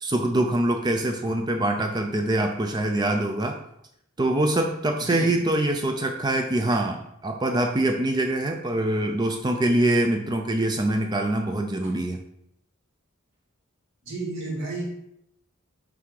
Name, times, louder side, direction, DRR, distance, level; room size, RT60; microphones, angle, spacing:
voice 1, 0.0-3.6 4.2-12.2, right 1 dB, 20° right, 4 dB, 0.4 m, -24 dB
voice 2, 5.0-5.5 11.8-12.0 14.0-14.8, right 2 dB, 65° right, -4 dB, 2.1 m, -32 dB
5.8 x 3.5 x 4.7 m, 0.77 s
head